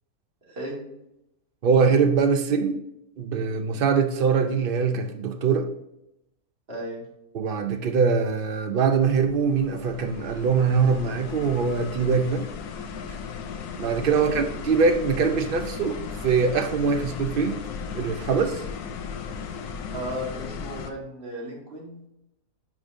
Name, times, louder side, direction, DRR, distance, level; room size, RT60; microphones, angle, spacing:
voice 1, 0.4-0.8 6.7-7.0 14.1-14.4 19.9-22.1, equal, 35° right, 2.4 m, -35 dB
voice 2, 1.6-2.8 3.2-5.7 7.3-12.5 13.7-17.6 17.9-18.6, right 5 dB, 80° right, 0.4 m, -23 dB
sound 1, 9.0-20.9, left 6 dB, 75° left, 1.2 m, -36 dB
9.5 x 5.1 x 2.6 m
omnidirectional pair, 1.7 m